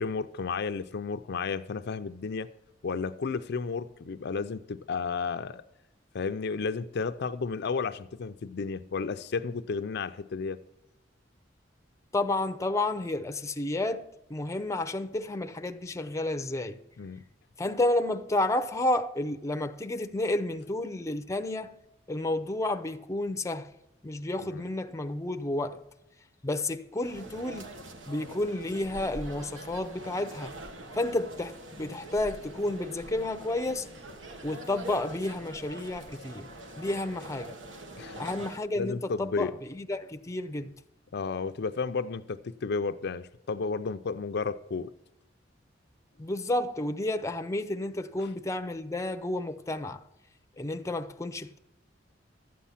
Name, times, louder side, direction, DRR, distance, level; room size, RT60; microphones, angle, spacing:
voice 1, 0.0-2.5 2.8-5.6 6.1-10.6 17.0-17.2 24.5-24.6 38.0-38.2 38.8-39.5 41.1-44.9, left 4 dB, 60° left, 0.5 m, -32 dB
voice 2, 12.1-16.8 17.6-21.7 22.1-23.7 24.0-25.8 26.4-27.7 28.1-30.6 30.9-33.9 34.4-36.5 36.8-37.6 38.2-40.8 46.2-50.0 50.6-51.6, left 2 dB, 15° left, 0.6 m, -31 dB
sound 1, 27.0-38.6, right 1 dB, 80° right, 1.4 m, -44 dB
12.5 x 8.4 x 5.7 m
head